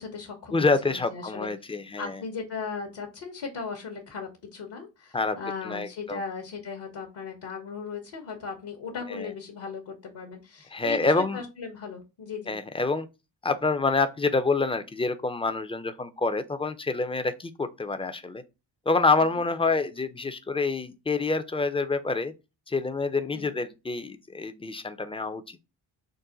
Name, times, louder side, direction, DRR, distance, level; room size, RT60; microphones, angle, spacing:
voice 1, 0.0-1.5 2.0-12.6 19.2-19.3 23.3-23.5, left 5 dB, 65° left, 1.0 m, -37 dB
voice 2, 0.5-2.2 5.1-5.4 5.6-6.2 9.1-9.3 10.7-11.4 12.5-13.1 13.4-18.4 18.9-22.3 22.7-25.6, left 3 dB, 10° left, 0.4 m, -27 dB
3.9 x 2.1 x 3.8 m
supercardioid pair, 50°, 48 cm